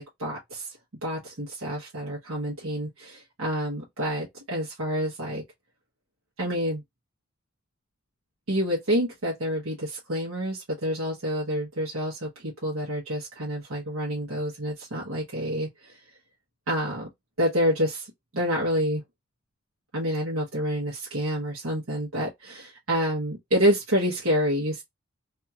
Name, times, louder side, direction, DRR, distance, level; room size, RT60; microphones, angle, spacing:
voice 1, 0.0-5.4 6.4-6.8 8.5-16.0 16.7-17.1 17.4-18.1 18.3-19.0 19.9-24.8, equal, 80° right, 1.1 m, -28 dB
2.9 x 2.7 x 2.3 m
head